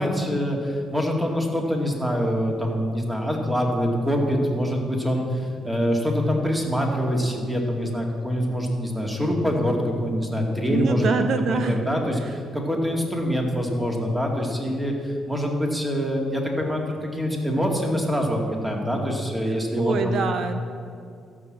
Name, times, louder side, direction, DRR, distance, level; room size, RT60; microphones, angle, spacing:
voice 1, 0.0-11.1 11.5-20.2, equal, 10° right, 0 dB, 2.2 m, -25 dB
voice 2, 10.7-11.8 12.2-12.3 19.8-20.6, right 5 dB, 65° right, 8 dB, 0.8 m, -25 dB
13.0 x 6.2 x 7.4 m, 2.2 s
cardioid pair, 90°, 0 cm